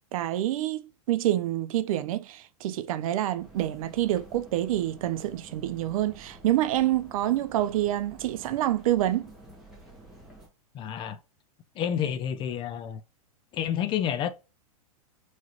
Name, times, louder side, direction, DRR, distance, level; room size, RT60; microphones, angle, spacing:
voice 1, 0.1-9.3, right 13 dB, 65° right, 0.5 m, -27 dB
sound 1, 3.4-10.5, right 2 dB, ahead, 1.6 m, -50 dB
voice 2, 10.7-11.2 11.8-13.0 13.5-14.3, left 9 dB, 25° left, 0.4 m, -29 dB
3.8 x 3.1 x 2.9 m
hypercardioid pair, 120°, 19 cm